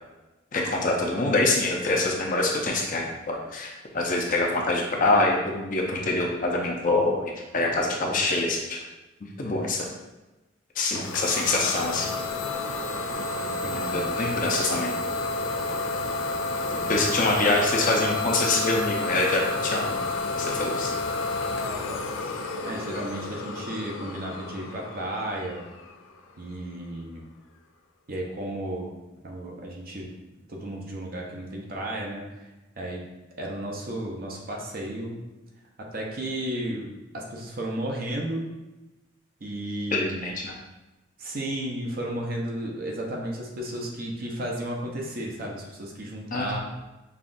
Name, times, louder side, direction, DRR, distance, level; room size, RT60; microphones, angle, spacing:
voice 1, 0.5-8.8 9.4-9.9 10.8-12.2 13.7-14.9 16.9-20.0 20.4-20.9 39.9-40.5 46.3-46.6, left 2 dB, 45° left, 0 dB, 0.6 m, -25 dB
Idling / Domestic sounds home sounds, 10.9-26.5, left 3 dB, 85° left, 0.4 m, -30 dB
voice 2, 13.4-14.1 16.6-17.1 22.6-25.7 26.4-27.2 28.1-28.9 29.2-30.1 30.5-32.3 32.8-33.0 33.4-35.2 35.8-38.4 39.4-40.2 41.2-46.6, right 1 dB, 50° right, -1 dB, 0.7 m, -33 dB
5.5 x 2.4 x 2.5 m, 1.0 s
head